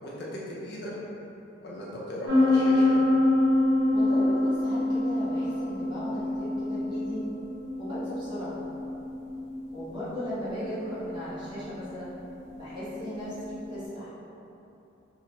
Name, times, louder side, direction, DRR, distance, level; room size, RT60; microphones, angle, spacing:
voice 1, 0.0-0.9 1.6-3.0, left 1 dB, 55° left, -6 dB, 0.6 m, -37 dB
sound 1, 2.2-13.8, left 1 dB, 65° right, 0.9 m, -27 dB
voice 2, 3.9-7.2 7.8-8.6 9.7-12.1 12.5-14.1, equal, 25° right, -11 dB, 1.0 m, -36 dB
2.9 x 2.9 x 2.8 m, 2.9 s
head